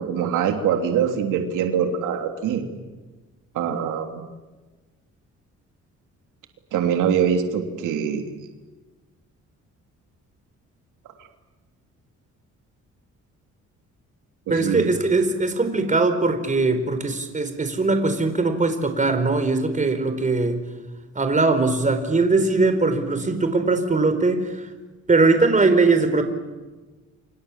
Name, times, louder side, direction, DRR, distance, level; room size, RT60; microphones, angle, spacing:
voice 1, 0.0-2.6 3.5-4.2 6.7-8.2 14.5-14.9, right 8 dB, 85° right, 4 dB, 3.2 m, -23 dB
voice 2, 14.5-20.6 21.1-24.7 25.1-26.2, right 3 dB, 25° right, 8 dB, 4.4 m, -20 dB
29.0 x 26.5 x 7.5 m, 1.2 s
cardioid pair, 90°, 30 cm